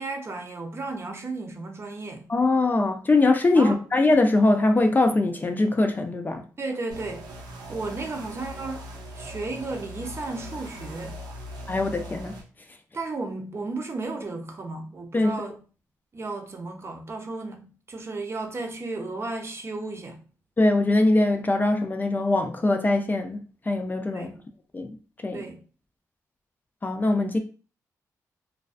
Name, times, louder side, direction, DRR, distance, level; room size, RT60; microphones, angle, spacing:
voice 1, 0.0-2.3 3.6-3.8 6.6-7.3 7.7-8.9 9.1-11.2 12.9-15.6 16.1-20.2 24.1-24.4 25.3-25.6, right 3 dB, 40° right, 0.6 m, -34 dB
voice 2, 2.3-6.4 11.7-12.3 15.1-15.3 20.6-24.3 24.7-25.0 25.2-25.4 26.8-27.4, left 2 dB, 25° left, 0.4 m, -22 dB
sound 1, 6.9-12.4, equal, 85° right, 0.6 m, -40 dB
2.3 x 2.2 x 2.4 m
cardioid pair, 65°, 7 cm